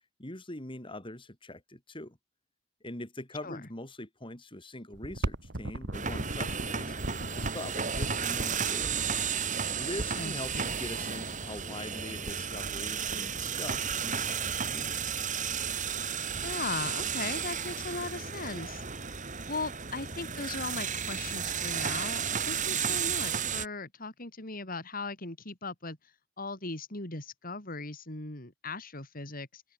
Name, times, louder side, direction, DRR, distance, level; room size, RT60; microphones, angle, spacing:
voice 1, 0.2-2.2 2.8-7.0 7.3-9.1 9.8-15.0, left 1 dB, 25° left, 5.2 m, -43 dB
sound 1, 4.9-10.6 11.5-11.6 11.9-12.0 12.2-12.8 13.1-13.5 13.7-14.6 15.2-15.3 15.7-16.0 16.3-16.4 16.6-17.2 17.7-18.5 18.9-19.0 19.9-20.0, right 1 dB, 65° right, 2.2 m, -38 dB
sound 2, 5.9-23.7, right 7 dB, 45° right, 4.7 m, -33 dB
voice 2, 10.1-10.7 16.4-18.8 19.5-26.0 26.4-29.6, left 3 dB, 50° left, 4.4 m, -38 dB
head